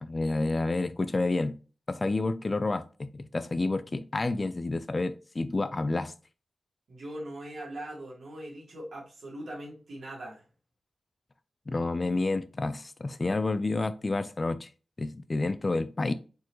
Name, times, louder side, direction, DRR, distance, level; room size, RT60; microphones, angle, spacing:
voice 1, 0.0-1.6 1.9-6.1 11.7-14.7 15.0-16.1, left 2 dB, 30° left, 0.4 m, -29 dB
voice 2, 6.9-10.4, right 1 dB, 75° right, 2.0 m, -41 dB
4.5 x 3.9 x 3.0 m
wide cardioid pair, 140°, 0 cm